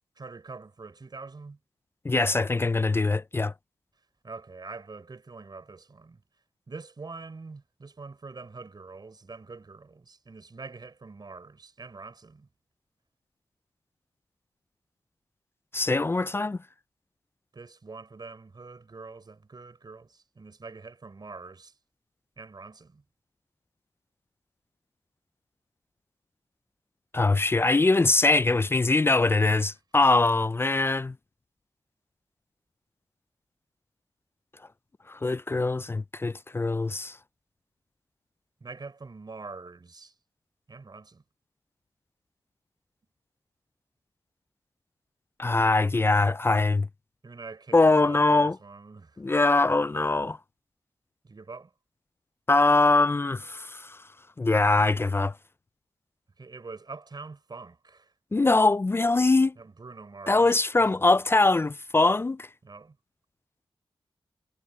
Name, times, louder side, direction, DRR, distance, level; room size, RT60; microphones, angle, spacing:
voice 1, 0.2-1.6 4.2-6.2 6.7-12.5 17.5-21.7 22.4-23.0 38.6-40.1 40.7-41.2 47.2-49.2 51.2-51.7 56.4-58.1 59.6-60.6 60.8-60.9 62.6-63.0, right 4 dB, 45° right, 3.8 m, -44 dB
voice 2, 2.0-3.5 15.7-16.6 27.1-31.1 35.1-37.2 45.4-46.9 47.7-48.6 49.2-50.4 52.5-54.0 54.4-55.3 58.3-59.5 60.3-62.5, left 3 dB, 25° left, 0.3 m, -22 dB
wide cardioid pair, 75°, 10 cm